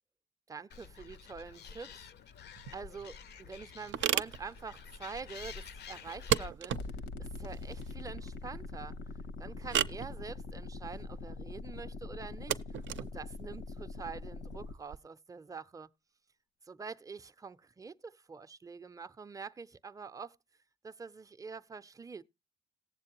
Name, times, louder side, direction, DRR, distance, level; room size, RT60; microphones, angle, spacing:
voice 1, 0.5-2.1 2.7-6.9 7.2-9.0 9.4-15.9 16.6-20.4 20.8-22.2, right 5 dB, 15° right, 0.5 m, -46 dB
Animal, 0.7-6.5, left 6 dB, 60° left, 0.5 m, -49 dB
sound 1, 2.5-15.0, right 10 dB, 70° right, 0.5 m, -38 dB
sound 2, 6.7-14.7, left 3 dB, 85° left, 0.9 m, -43 dB
18.5 x 7.4 x 2.8 m
cardioid pair, 90°, 20 cm